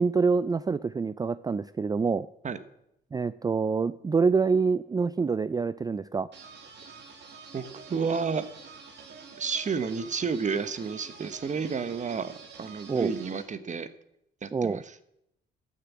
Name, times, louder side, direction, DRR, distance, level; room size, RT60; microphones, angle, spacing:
voice 1, 0.0-2.3 3.1-6.3 12.9-13.1 14.5-14.8, right 4 dB, 20° right, 16 dB, 0.4 m, -26 dB
sound 1, 6.3-13.4, right 5 dB, 60° right, 2.8 m, -47 dB
voice 2, 7.5-8.5 9.4-12.3 12.6-13.9 14.4-14.9, right 5 dB, 40° right, 13 dB, 1.1 m, -31 dB
13.5 x 6.8 x 7.4 m, 0.79 s
cardioid pair, 90°, 20 cm